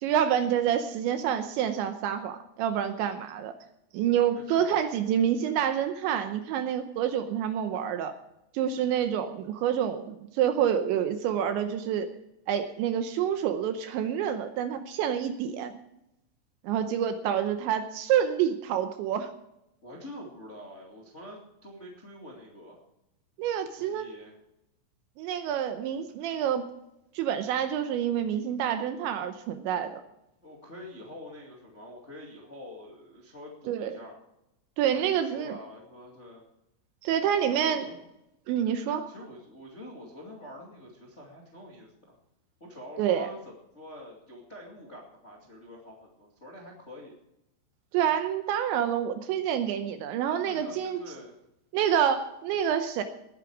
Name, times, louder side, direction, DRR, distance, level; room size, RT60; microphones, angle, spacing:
voice 1, 0.0-3.5 3.9-8.1 8.5-12.1 12.5-15.7 16.6-19.3 23.4-24.2 25.2-26.7 27.1-30.0 33.7-34.0 34.8-35.6 37.0-37.8 38.5-39.0 43.0-43.3 47.9-51.0 51.7-53.0, right 9 dB, 80° right, 8 dB, 2.8 m, -27 dB
voice 2, 4.3-4.8 19.8-22.8 23.7-24.4 30.4-34.2 34.9-36.4 37.4-38.0 39.1-42.2 42.6-47.1 50.4-51.3, left 1 dB, 35° left, -2 dB, 1.0 m, -46 dB
19.0 x 9.8 x 4.8 m, 0.85 s
omnidirectional pair, 5.8 m